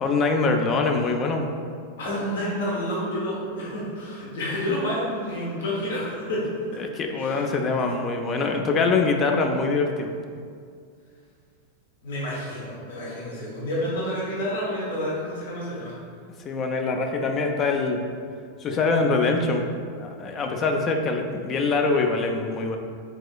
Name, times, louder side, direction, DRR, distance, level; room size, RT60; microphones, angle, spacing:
voice 1, 0.0-1.5 6.8-10.1 16.4-18.0 18.6-19.7 20.0-22.8, left 3 dB, 30° left, 4 dB, 0.4 m, -24 dB
voice 2, 2.0-6.4 7.2-7.4 12.0-15.9, equal, 65° left, -6 dB, 1.0 m, -29 dB
4.7 x 3.7 x 2.3 m, 2.2 s
figure-of-eight pair, 90°, 0 cm